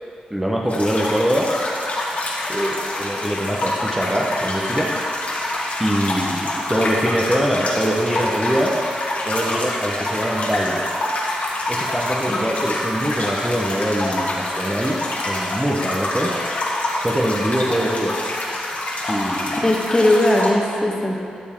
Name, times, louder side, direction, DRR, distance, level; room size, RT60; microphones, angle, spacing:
voice 1, 0.3-1.6 2.5-4.9 5.8-8.8 9.2-10.9 11.7-16.4 17.0-18.2 19.1-19.7, equal, 10° right, -2 dB, 1.0 m, -23 dB
sound 1, 0.7-20.5, left 1 dB, 55° left, 1.7 m, -26 dB
voice 2, 19.6-21.2, left 1 dB, 20° left, -1 dB, 1.4 m, -18 dB
13.0 x 6.9 x 3.8 m, 2.6 s
cardioid pair, 70°, 3 cm